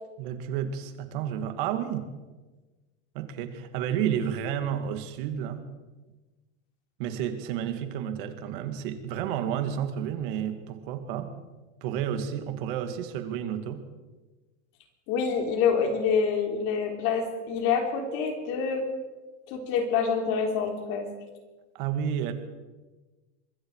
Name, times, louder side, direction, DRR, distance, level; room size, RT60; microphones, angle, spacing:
voice 1, 0.2-2.1 3.1-5.7 7.0-11.3 11.8-13.8 21.7-22.3, right 9 dB, 45° right, 8 dB, 2.3 m, -31 dB
voice 2, 15.1-18.9 19.5-21.1, left 6 dB, 35° left, 4 dB, 3.5 m, -26 dB
24.5 x 21.5 x 4.8 m, 1.2 s
supercardioid pair, 170°, 37 cm